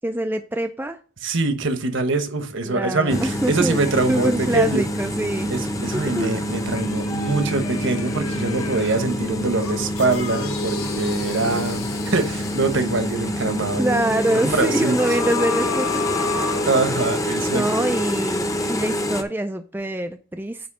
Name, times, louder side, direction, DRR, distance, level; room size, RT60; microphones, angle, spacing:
voice 1, 0.0-1.0 2.6-3.8 4.1-5.5 5.8-6.3 13.8-16.3 17.5-20.7, right 1 dB, 10° right, 0.4 m, -25 dB
voice 2, 1.2-4.8 5.5-14.0 14.3-14.9 16.7-17.6, right 3 dB, 55° right, 1.1 m, -23 dB
sound 1, 3.1-19.2, equal, 15° left, 0.8 m, -26 dB
sound 2, 5.9-9.1 9.6-13.2 15.0-17.3 17.8-17.9, left 5 dB, 85° left, 1.3 m, -32 dB
9.3 x 3.1 x 6.2 m
head